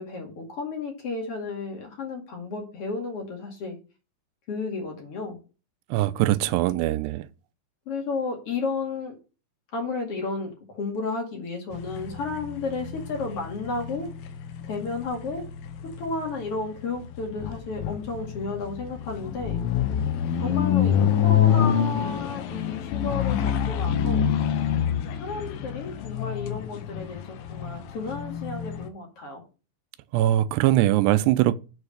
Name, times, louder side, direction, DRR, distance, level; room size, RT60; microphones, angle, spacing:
voice 1, 0.0-3.8 4.5-5.4 7.9-9.1 9.7-14.1 14.6-15.4 16.0-19.6 20.4-24.3 25.1-29.4, left 3 dB, 45° left, 2.4 m, -32 dB
voice 2, 5.9-7.2 30.1-31.5, right 14 dB, 90° right, 2.8 m, -21 dB
sound 1, 11.7-28.9, left 9 dB, 75° left, 2.4 m, -27 dB
7.0 x 4.8 x 6.4 m
omnidirectional pair, 4.7 m